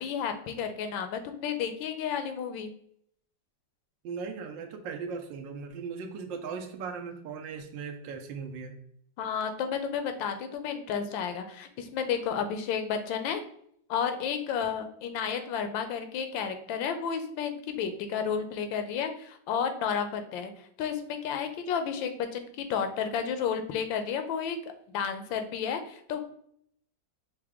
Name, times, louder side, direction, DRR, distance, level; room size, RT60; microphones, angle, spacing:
voice 1, 0.0-2.7 9.2-13.4 13.9-24.6 24.9-26.2, left 7 dB, 85° left, 8 dB, 1.3 m, -32 dB
voice 2, 4.0-8.7, right 5 dB, 90° right, 4 dB, 1.4 m, -38 dB
5.7 x 2.2 x 3.5 m, 0.68 s
omnidirectional pair, 2.0 m